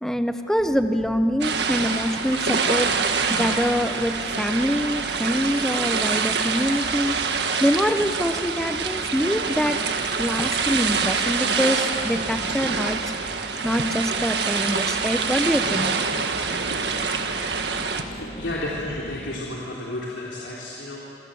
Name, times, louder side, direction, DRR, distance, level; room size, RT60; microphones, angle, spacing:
voice 1, 0.0-2.9 3.3-7.2 7.6-9.8 10.2-13.0 13.6-15.9, equal, 5° left, 8 dB, 1.0 m, -24 dB
sound 1, 0.6-19.4, equal, 40° left, 4.4 m, -41 dB
sound 2, 1.4-18.0, right 5 dB, 65° right, 1.7 m, -26 dB
voice 2, 18.1-21.0, left 1 dB, 85° left, -5 dB, 3.7 m, -32 dB
26.5 x 24.5 x 8.0 m, 2.8 s
head